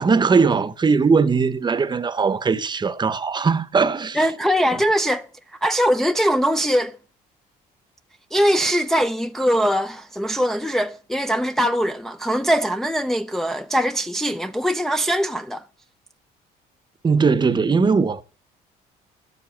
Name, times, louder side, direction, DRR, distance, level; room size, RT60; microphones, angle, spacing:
voice 1, 0.0-4.3 17.0-18.2, right 5 dB, 25° right, 0.9 m, -19 dB
voice 2, 4.2-5.3 5.6-7.0 8.3-15.6, equal, ahead, 0.5 m, -21 dB
13.0 x 7.7 x 7.3 m
cardioid pair, 110°, 17 cm